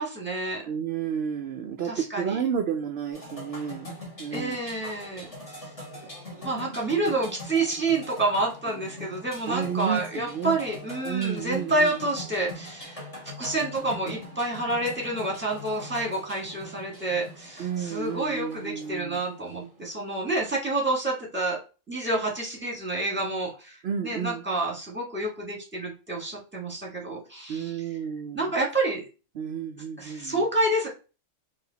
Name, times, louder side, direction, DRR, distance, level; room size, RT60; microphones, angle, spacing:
voice 1, 0.0-0.6 1.8-2.4 4.3-5.7 6.4-13.0 13.4-21.6 21.9-23.8 24.0-28.0 28.3-29.1 30.0-30.9, right 2 dB, 10° right, -2 dB, 1.5 m, -28 dB
voice 2, 0.7-3.9 4.2-4.6 6.4-6.7 9.5-10.6 11.0-11.9 17.6-19.2 23.8-24.4 27.5-28.5 29.4-30.4, right 8 dB, 60° right, 5 dB, 0.7 m, -31 dB
sound 1, 3.1-19.9, left 1 dB, 25° left, 1.9 m, -42 dB
4.8 x 2.8 x 3.9 m, 0.33 s
omnidirectional pair, 1.4 m